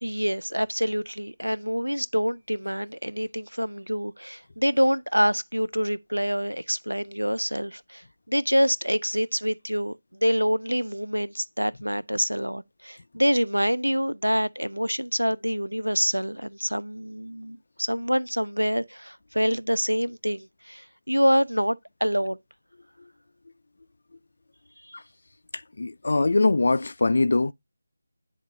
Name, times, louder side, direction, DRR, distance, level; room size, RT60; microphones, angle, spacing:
voice 1, 0.0-22.4 24.9-25.0, equal, 90° right, 0.4 m, -26 dB
voice 2, 25.5-27.5, left 3 dB, 50° left, 0.3 m, -22 dB
10.5 x 3.6 x 2.7 m
figure-of-eight pair, 160°, 0 cm